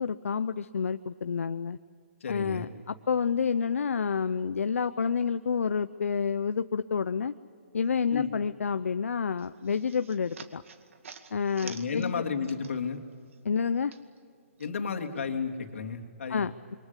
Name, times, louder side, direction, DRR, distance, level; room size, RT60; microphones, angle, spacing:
voice 1, 0.0-1.8 2.3-7.3 7.7-10.6 11.3-12.2 13.4-13.9 16.3-16.7, left 6 dB, 90° left, 12 dB, 0.7 m, -29 dB
voice 2, 2.2-2.7 8.1-8.3 11.6-13.0 14.6-16.4, left 5 dB, 70° left, 2 dB, 3.1 m, -32 dB
sound 1, 9.4-13.0 13.3-14.7, right 6 dB, 70° right, 2.2 m, -49 dB
28.0 x 24.0 x 8.3 m, 2.2 s
hypercardioid pair, 160°, 7 cm